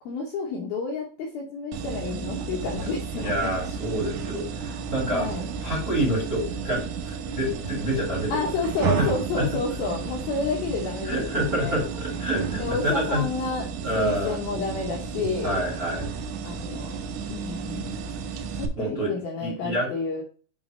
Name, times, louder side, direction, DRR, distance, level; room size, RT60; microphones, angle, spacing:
voice 1, 0.1-3.5 5.1-5.5 8.3-11.8 12.6-13.6 14.0-15.6 16.4-17.0 17.3-18.0 18.5-20.2, left 4 dB, 75° left, -1 dB, 2.3 m, -30 dB
sound 1, 1.7-18.7, right 6 dB, 90° right, 3.4 m, -32 dB
voice 2, 3.1-5.3 5.6-8.4 9.4-9.5 11.0-13.2 13.8-14.4 15.4-16.1 18.8-19.1 19.4-19.9, right 1 dB, 25° right, -4 dB, 2.0 m, -27 dB
7.3 x 3.8 x 4.9 m, 0.40 s
omnidirectional pair, 5.5 m